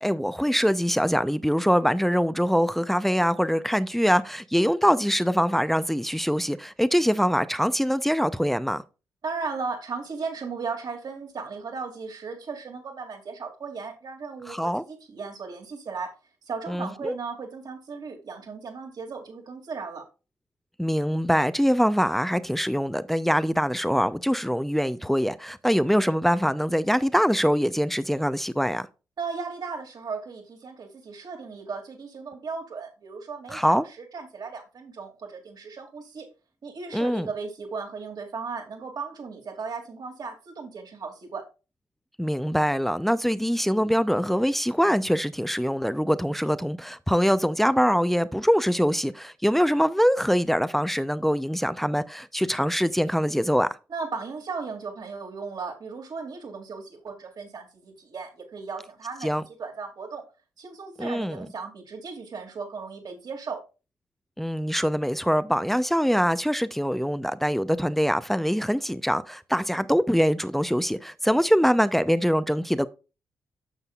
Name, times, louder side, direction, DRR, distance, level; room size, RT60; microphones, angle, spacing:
voice 1, 0.0-8.8 14.5-14.8 16.7-17.1 20.8-28.9 33.5-33.8 36.9-37.3 42.2-53.7 59.2-59.4 61.0-61.5 64.4-72.9, equal, 5° left, 0.6 m, -23 dB
voice 2, 9.2-16.1 16.4-20.0 29.2-36.3 36.6-41.4 53.9-60.2 60.6-63.6, right 4 dB, 60° right, 2.7 m, -36 dB
9.8 x 6.7 x 2.4 m
supercardioid pair, 50°, 8 cm